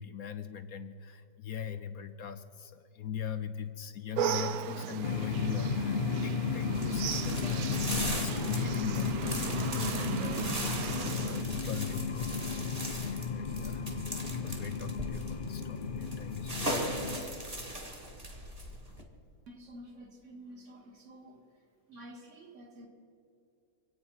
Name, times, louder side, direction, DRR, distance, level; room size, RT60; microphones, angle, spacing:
voice 1, 0.0-13.9 14.3-17.3 18.9-19.0, left 8 dB, 65° left, 10 dB, 1.0 m, -41 dB
sound 1, 4.2-11.4, right 9 dB, 65° right, 1.0 m, -37 dB
sound 2, 5.0-17.2, left 5 dB, 80° left, 0.4 m, -34 dB
sound 3, 6.7-19.0, right 1 dB, 20° right, 1.8 m, -39 dB
voice 2, 19.5-21.4 21.9-22.9, right 1 dB, 40° right, 1 dB, 2.3 m, -50 dB
26.0 x 8.9 x 5.6 m, 2.6 s
omnidirectional pair, 1.9 m